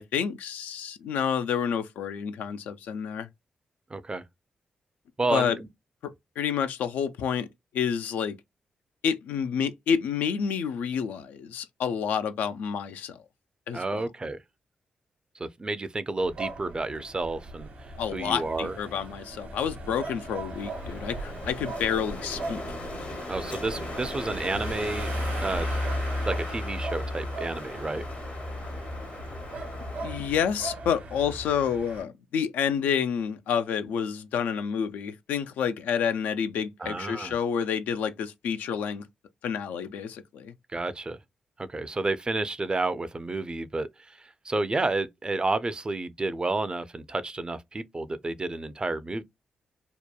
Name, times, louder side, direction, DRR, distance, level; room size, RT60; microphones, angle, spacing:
voice 1, 0.0-3.3 5.3-5.6 6.0-7.5 7.7-8.4 9.0-13.2 13.7-14.0 18.0-22.6 30.0-39.1 39.4-40.5, left 7 dB, 80° left, 0.3 m, -29 dB
voice 2, 3.9-4.2 5.2-5.7 13.7-14.4 15.4-17.7 18.1-18.8 23.3-25.1 25.4-25.7 26.2-28.1 36.8-37.4 40.7-41.2 41.6-49.2, right 2 dB, 30° right, 0.4 m, -30 dB
sound 1, 16.2-32.0, equal, 70° right, 1.1 m, -36 dB
Wind, 20.4-30.3, left 2 dB, 60° left, 0.8 m, -39 dB
2.8 x 2.2 x 2.2 m
supercardioid pair, 40°, 3 cm